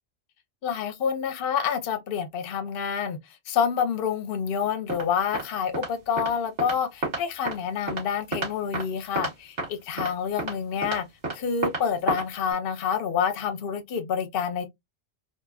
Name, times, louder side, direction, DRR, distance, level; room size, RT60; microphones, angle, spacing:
voice 1, 0.6-3.2 3.5-11.1 11.3-14.7, left 7 dB, 60° left, 0.8 m, -28 dB
sound 1, 4.9-5.0 5.3-5.4 5.7-5.9 6.2-6.3 6.6-6.8 7.0-7.6 7.9-8.0 8.3-8.8 9.2-9.3 9.6-9.7 10.0-10.1 10.4-10.5 10.8-11.0 11.2-11.3 11.6-11.8 12.1-12.2 12.5-12.6, right 2 dB, 80° right, 1.8 m, -29 dB
4.0 x 2.2 x 2.3 m
omnidirectional pair, 1.1 m